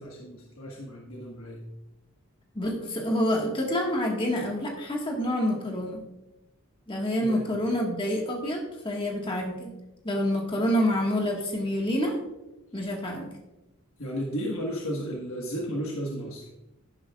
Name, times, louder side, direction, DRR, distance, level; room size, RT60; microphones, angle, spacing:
voice 1, 0.0-1.6 7.2-7.4 14.0-16.5, equal, 65° left, -2 dB, 1.5 m, -34 dB
voice 2, 2.5-6.0 6.9-9.7 10.0-12.2 12.7-13.3, equal, 25° left, 0 dB, 1.6 m, -27 dB
11.0 x 11.0 x 2.4 m, 0.96 s
head